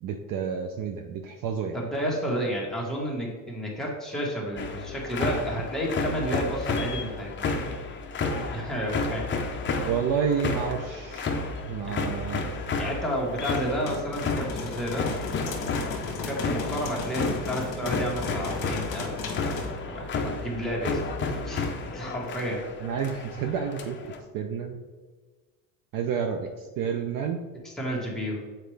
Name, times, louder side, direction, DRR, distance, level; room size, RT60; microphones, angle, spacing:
voice 1, 0.0-1.8 9.8-12.6 22.8-24.8 25.9-27.4, right 7 dB, 50° right, 5 dB, 0.6 m, -30 dB
voice 2, 1.7-7.5 8.5-9.3 11.8-12.1 12.8-15.1 16.1-19.5 19.9-22.6 27.6-28.4, equal, ahead, -4 dB, 1.4 m, -31 dB
sound 1, 4.6-24.2, left 3 dB, 25° left, 0.7 m, -32 dB
sound 2, 13.5-19.7, left 4 dB, 45° left, 1.2 m, -35 dB
7.0 x 4.5 x 3.3 m, 1.4 s
cardioid pair, 125°, 43 cm